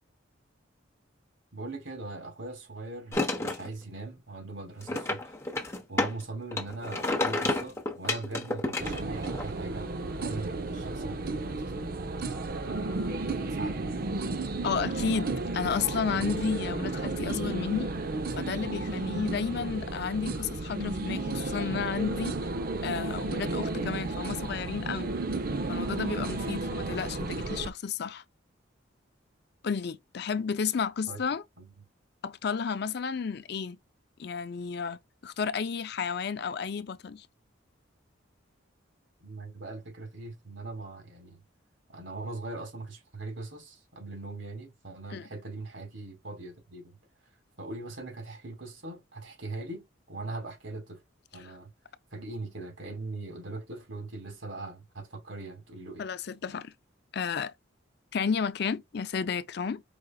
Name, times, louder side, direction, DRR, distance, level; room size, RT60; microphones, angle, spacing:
voice 1, 1.5-5.4 5.9-12.0 12.6-14.0 31.1-31.2 31.6-31.7 39.2-41.4 41.9-46.9 47.6-51.0 51.3-51.7 52.1-56.0, right 2 dB, 70° right, 2.1 m, -41 dB
sound 1, 3.1-3.7 4.8-6.2 6.5-9.5, left 2 dB, 15° left, 0.9 m, -30 dB
sound 2, 8.8-27.7, right 2 dB, 45° right, 0.6 m, -33 dB
voice 2, 14.6-17.9 18.3-22.4 22.8-25.1 25.7-28.2 29.6-31.4 32.2-33.8 34.2-37.3 45.1-45.3 51.4-51.5 56.0-56.7 57.1-57.5 58.1-59.8, left 6 dB, 55° left, 0.4 m, -32 dB
5.0 x 4.0 x 2.2 m
head